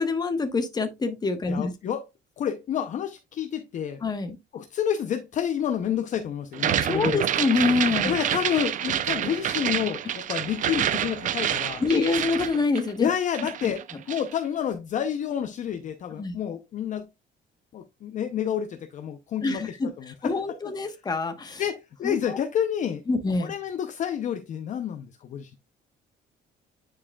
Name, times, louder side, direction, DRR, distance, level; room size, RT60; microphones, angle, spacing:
voice 1, 0.0-1.7 4.0-4.4 6.8-8.1 11.8-13.1 13.6-13.7 16.2-16.4 19.4-19.9 20.2-21.6 22.0-22.4 23.1-23.5, left 4 dB, 20° left, 1.1 m, -26 dB
voice 2, 1.5-2.0 2.4-4.0 4.5-7.2 8.0-11.8 13.0-13.8 14.1-17.1 17.7-19.6 20.0-20.3 21.6-23.0 23.4-25.6, left 9 dB, 40° left, 0.6 m, -29 dB
sound 1, 6.5-13.1 13.3-14.3, right 10 dB, 45° right, 0.5 m, -28 dB
9.7 x 4.7 x 2.3 m
cardioid pair, 145°, 19 cm